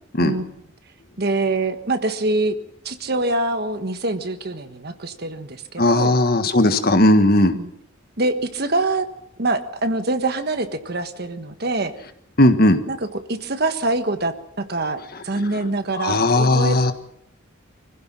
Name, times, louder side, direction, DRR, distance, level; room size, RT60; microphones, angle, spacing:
voice 1, 1.2-2.6 2.8-6.1 7.5-7.7 8.2-9.1 9.4-11.9 12.9-15.0 15.2-16.9, right 2 dB, 50° right, 9 dB, 1.4 m, -24 dB
voice 2, 5.8-7.5 12.4-12.8 15.9-16.9, left 1 dB, 50° left, 9 dB, 1.6 m, -16 dB
25.0 x 15.5 x 7.5 m, 0.74 s
head